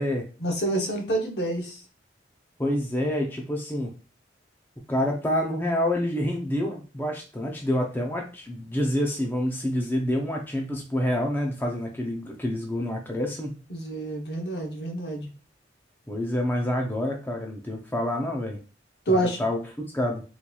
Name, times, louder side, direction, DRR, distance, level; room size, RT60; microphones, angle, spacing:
voice 1, 0.4-1.8 13.7-15.3 19.1-19.4, right 1 dB, 65° left, 2 dB, 0.9 m, -27 dB
voice 2, 2.6-3.9 4.9-13.5 16.1-18.6 19.1-20.2, left 1 dB, 10° left, 1 dB, 0.5 m, -27 dB
3.9 x 3.1 x 2.3 m, 0.35 s
head